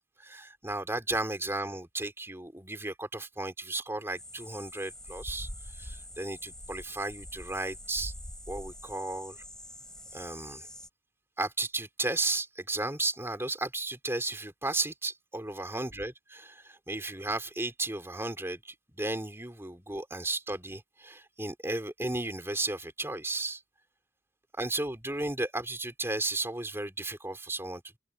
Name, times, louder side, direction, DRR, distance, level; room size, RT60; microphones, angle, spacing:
voice 1, 0.0-8.1 8.5-9.4 10.1-10.7 11.4-23.6 24.6-27.8, right 2 dB, 15° right, 3.1 m, -34 dB
sound 1, 4.2-10.9, equal, 5° left, 5.3 m, -44 dB
head